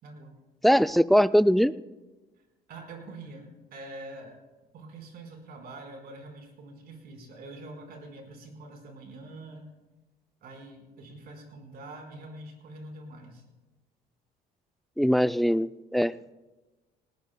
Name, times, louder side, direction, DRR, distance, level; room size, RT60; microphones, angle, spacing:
voice 1, 0.0-0.3 2.7-4.4 4.7-9.7 10.4-13.4, right 2 dB, 65° right, 3 dB, 4.6 m, -45 dB
voice 2, 0.6-1.7 15.0-16.3, equal, ahead, 13 dB, 0.4 m, -22 dB
19.5 x 19.5 x 2.3 m, 1.1 s
cardioid pair, 110°, 17 cm